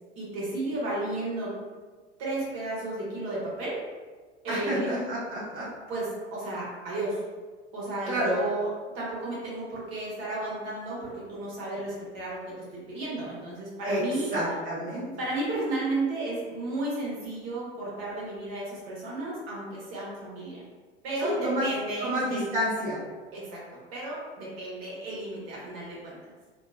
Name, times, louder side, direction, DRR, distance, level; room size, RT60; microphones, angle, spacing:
voice 1, 0.2-1.5 2.2-3.8 4.4-4.9 5.9-7.2 7.7-8.7 8.9-12.5 12.9-14.3 15.2-20.6 21.0-22.5 23.3-23.6 23.9-26.3, right 2 dB, 45° right, -6 dB, 1.0 m, -33 dB
voice 2, 4.5-5.7 8.1-8.4 13.8-14.0 14.3-15.1 21.2-21.7 22.0-23.0, equal, 25° right, -9 dB, 0.8 m, -29 dB
2.6 x 2.1 x 2.4 m, 1.4 s
figure-of-eight pair, 80°, 34 cm